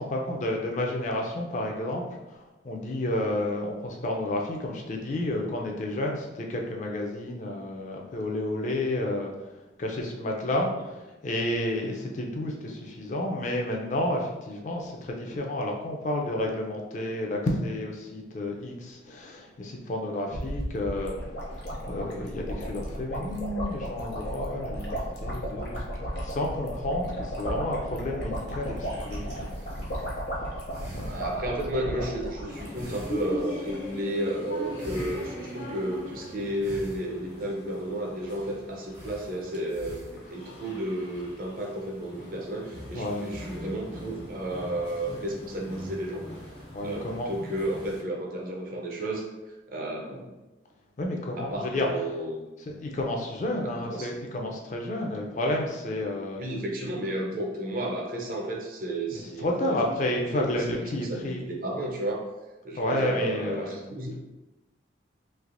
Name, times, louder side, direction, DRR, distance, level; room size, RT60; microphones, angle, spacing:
voice 1, 0.0-2.0 2.3-9.5 9.8-29.5 29.8-30.0 30.3-31.2 42.9-43.3 46.7-47.3 51.0-51.9 52.7-56.4 59.1-61.6 62.7-64.0, left 1 dB, 40° left, 1 dB, 0.4 m, -31 dB
sound 1, 20.3-33.1 33.3-33.4 33.6-33.9, equal, 65° left, 0.8 m, -34 dB
sound 2, 28.1-30.4 30.7-31.8 32.1-32.4 32.7-36.1 36.6-38.2 38.4-38.5 38.9-40.3, right 1 dB, 70° right, 1.3 m, -45 dB
voice 2, 31.0-46.2 46.8-49.2 49.7-50.3 51.4-52.5 53.8-54.2 56.4-62.2 62.6-64.2, right 1 dB, 50° right, 0 dB, 0.5 m, -32 dB
sound 3, 32.5-48.0, left 1 dB, 80° left, 1.2 m, -41 dB
3.2 x 2.8 x 2.5 m, 1.1 s
head